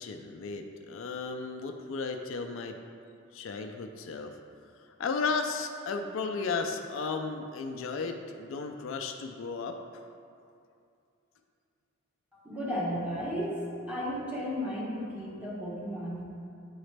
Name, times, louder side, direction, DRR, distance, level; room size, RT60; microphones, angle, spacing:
voice 1, 0.0-2.8 3.3-4.3 5.0-9.8, left 4 dB, 65° left, 4 dB, 0.4 m, -34 dB
voice 2, 12.3-16.2, equal, 5° right, -6 dB, 1.2 m, -34 dB
8.6 x 4.0 x 3.3 m, 2.5 s
head